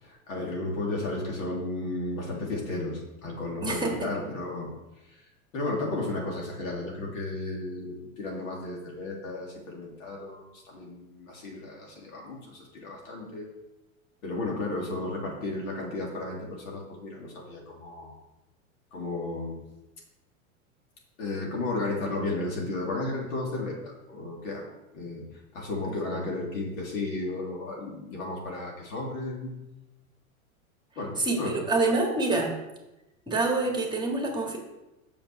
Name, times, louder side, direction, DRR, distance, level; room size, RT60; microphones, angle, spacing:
voice 1, 0.0-4.7 5.5-13.5 14.2-18.1 18.9-19.6 21.2-24.6 24.9-25.2 25.5-29.6 30.9-31.6, left 2 dB, 70° left, -2 dB, 3.3 m, -33 dB
voice 2, 3.6-4.1 31.2-32.5 33.3-34.6, right 3 dB, 10° right, 1 dB, 2.0 m, -26 dB
6.4 x 5.9 x 6.9 m, 0.99 s
hypercardioid pair, 105°, 42 cm